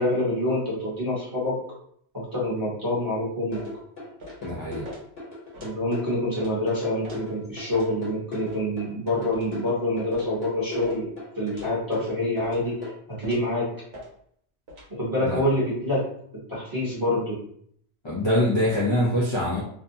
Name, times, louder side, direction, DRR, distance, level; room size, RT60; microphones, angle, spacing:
voice 1, 0.0-1.6 2.1-3.6 5.6-11.1 11.4-12.8 13.1-13.7 14.9-16.0 16.5-17.4, left 1 dB, 20° right, -8 dB, 1.0 m, -26 dB
sound 1, 3.5-12.9, left 2 dB, 65° left, 1.2 m, -37 dB
sound 2, 3.5-3.7 4.2-4.4 4.8-5.0 5.5-5.8 6.4-6.5 7.0-7.2 7.7-7.9 8.5-8.6 9.3-9.5 10.1-10.3 10.8-11.0 11.6-11.8 12.4-12.7 13.2-13.5 13.9-14.1 14.7-14.9, equal, 70° right, 1.0 m, -43 dB
voice 2, 4.4-4.9 15.2-15.4 18.0-19.6, left 1 dB, 35° left, -6 dB, 0.5 m, -24 dB
2.7 x 2.1 x 2.6 m, 0.65 s
omnidirectional pair, 1.1 m